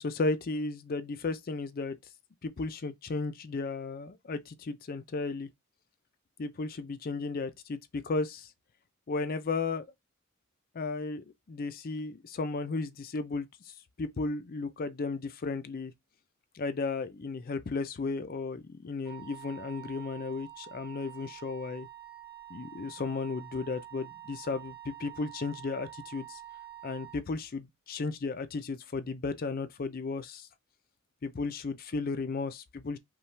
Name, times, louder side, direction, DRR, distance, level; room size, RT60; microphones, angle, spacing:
voice 1, 0.0-2.0 2.4-5.5 6.4-8.5 9.1-9.9 10.7-15.9 16.5-21.9 22.5-26.4 26.8-30.5 31.2-33.0, left 3 dB, 45° left, 0.4 m, -34 dB
Wind instrument woodwind instrument, 19.0-27.2, right 12 dB, 25° right, 2.5 m, -47 dB
5.5 x 2.3 x 3.2 m
head